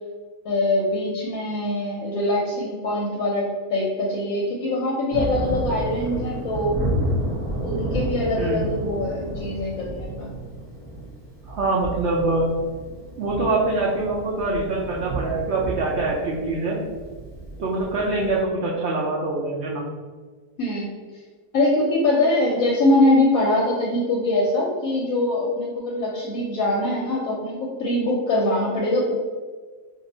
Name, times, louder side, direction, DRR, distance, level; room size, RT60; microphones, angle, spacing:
voice 1, 0.4-6.8 7.6-10.3 20.6-20.9 21.5-29.1, left 1 dB, 70° left, -2 dB, 0.9 m, -23 dB
Thunder, 5.1-18.4, right 1 dB, 15° left, 0.4 m, -31 dB
voice 2, 8.4-8.7 11.5-12.5 13.2-16.8 17.6-19.9, right 2 dB, 80° right, -4 dB, 0.6 m, -24 dB
2.6 x 2.5 x 4.0 m, 1.5 s
omnidirectional pair, 1.7 m